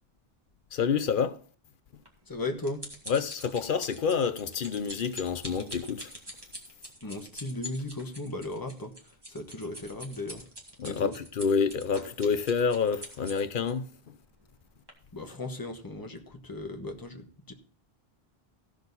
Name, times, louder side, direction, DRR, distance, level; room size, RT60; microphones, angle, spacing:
voice 1, 0.7-1.4 3.1-6.1 10.8-14.1, left 6 dB, 60° left, 0.8 m, -28 dB
sound 1, 2.1-13.7 14.4-14.5 14.9-15.0, equal, 25° right, 2.0 m, -44 dB
voice 2, 2.3-2.8 7.0-10.5 10.8-11.1 15.1-17.5, left 2 dB, 20° left, 1.2 m, -37 dB
16.0 x 6.3 x 4.0 m
omnidirectional pair, 1.0 m